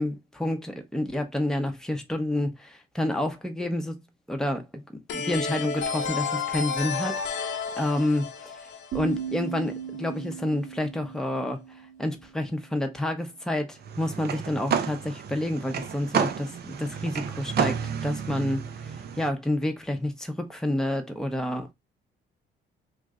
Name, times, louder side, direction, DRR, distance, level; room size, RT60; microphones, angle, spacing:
voice 1, 0.0-4.0 4.3-4.8 5.1-8.5 8.9-11.6 12.0-21.7, left 1 dB, 5° left, 0.8 m, -29 dB
sound 1, 5.1-9.7, left 5 dB, 70° left, 0.8 m, -31 dB
sound 2, 8.9-12.8, right 8 dB, 75° right, 1.0 m, -38 dB
sound 3, 13.8-19.3, right 7 dB, 55° right, 0.6 m, -31 dB
3.1 x 2.6 x 3.6 m
cardioid pair, 90°, 20 cm